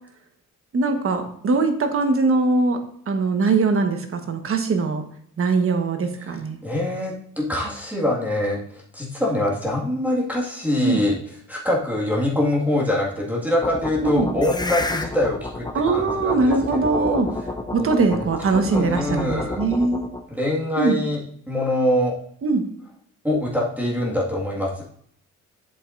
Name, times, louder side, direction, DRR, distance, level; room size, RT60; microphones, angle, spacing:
voice 1, 0.7-5.0 5.4-6.6 10.8-11.0 14.0-14.3 15.7-17.3 17.7-20.0 20.8-21.0 22.4-22.6, right 3 dB, 45° right, 6 dB, 1.3 m, -21 dB
voice 2, 6.6-11.2 11.5-17.2 17.8-19.6 20.3-21.2 21.5-22.1 23.2-24.8, left 1 dB, 5° right, -4 dB, 1.9 m, -24 dB
sound 1, 13.6-20.2, left 2 dB, 15° left, 0.7 m, -30 dB
8.5 x 6.8 x 2.6 m, 0.66 s
cardioid pair, 90°, 30 cm